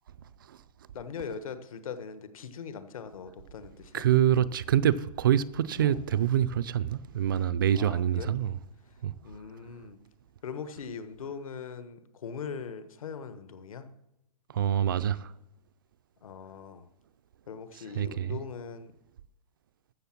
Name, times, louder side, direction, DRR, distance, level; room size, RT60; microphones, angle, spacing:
voice 1, 0.9-4.0 5.8-6.2 7.7-8.3 9.2-10.0 10.4-13.9 16.2-16.9 17.5-18.9, left 6 dB, 60° left, 1.3 m, -41 dB
voice 2, 3.9-8.5 9.0-9.1 14.5-15.3 18.0-18.4, right 10 dB, 35° right, 0.4 m, -26 dB
14.0 x 6.6 x 5.9 m
hypercardioid pair, 165°, 20 cm